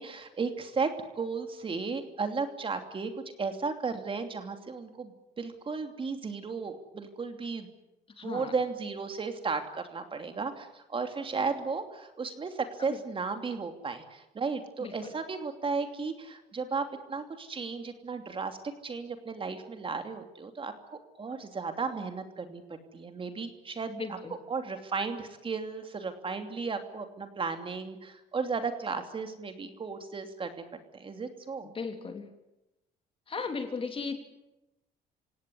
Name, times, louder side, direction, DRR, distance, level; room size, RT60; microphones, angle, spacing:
voice 1, 0.0-3.1 3.4-7.7 8.2-18.6 18.8-20.7 21.2-22.6 22.9-24.2 24.5-30.6 30.9-31.7, right 4 dB, 30° right, 6 dB, 2.9 m, -34 dB
voice 2, 8.2-8.5 12.9-13.0 14.8-15.1 23.9-24.3 31.7-32.3 33.3-34.2, left 4 dB, 30° left, 6 dB, 3.4 m, -36 dB
28.0 x 17.5 x 9.6 m, 0.96 s
cardioid pair, 110°, 17 cm